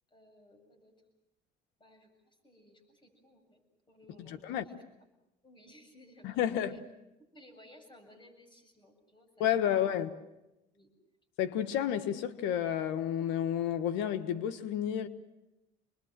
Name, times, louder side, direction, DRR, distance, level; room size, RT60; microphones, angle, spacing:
voice 1, 0.1-1.0 1.8-3.6 3.9-4.4 4.6-4.7 5.4-6.8 7.3-9.9 10.7-10.9, left 1 dB, 25° left, 7.5 m, -59 dB
voice 2, 4.3-4.6 6.2-6.7 9.4-10.1 11.4-15.1, left 10 dB, 90° left, 1.4 m, -31 dB
27.5 x 21.5 x 7.5 m
supercardioid pair, 90°, 18 cm